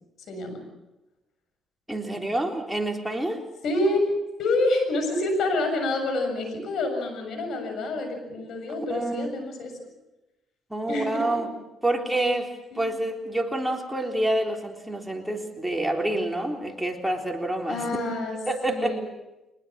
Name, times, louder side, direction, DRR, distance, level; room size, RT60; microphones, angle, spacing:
voice 1, 0.3-0.6 3.6-4.0 4.4-9.8 10.9-11.4 12.7-12.9 17.7-18.4 18.7-19.0, left 2 dB, 70° left, 6 dB, 7.1 m, -27 dB
voice 2, 1.9-3.4 8.8-9.3 10.7-11.5 11.8-17.8 18.5-18.9, right 1 dB, 5° right, 1 dB, 3.6 m, -27 dB
23.5 x 20.5 x 7.4 m, 0.96 s
cardioid pair, 90°, 0 cm